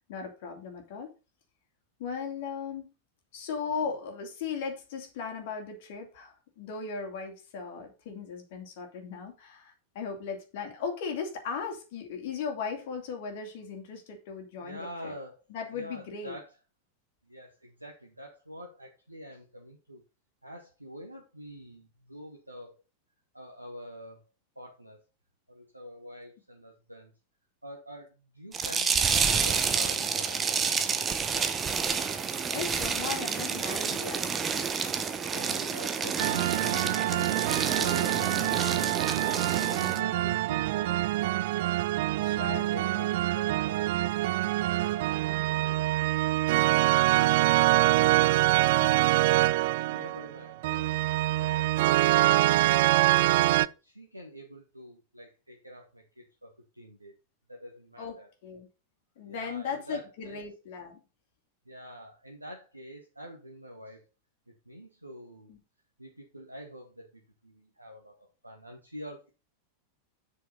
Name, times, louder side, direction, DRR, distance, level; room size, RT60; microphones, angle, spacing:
voice 1, 0.1-1.1 2.0-2.9 3.3-15.1 15.5-16.3 32.5-34.7 38.3-38.6 42.2-42.9 58.0-58.2 58.4-58.7 59.2-61.0 65.5-65.6, left 5 dB, 50° left, 3 dB, 2.9 m, -37 dB
voice 2, 14.6-15.4 15.7-16.5 17.2-20.0 20.4-22.8 23.3-24.2 24.5-25.0 25.5-27.1 27.6-30.6 34.8-37.5 37.8-41.6 42.1-44.3 44.8-46.1 47.1-49.4 49.9-51.0 51.4-53.1 53.4-57.1 57.5-58.3 59.2-60.5 61.6-64.1 64.6-65.5 66.0-68.2 68.4-69.3, equal, 85° right, 1 dB, 1.5 m, -46 dB
sound 1, 28.5-40.0, right 6 dB, 20° right, 1.1 m, -29 dB
sound 2, 36.2-53.7, right 17 dB, 50° right, 0.4 m, -25 dB
7.8 x 6.3 x 5.4 m, 0.30 s
figure-of-eight pair, 90°, 0 cm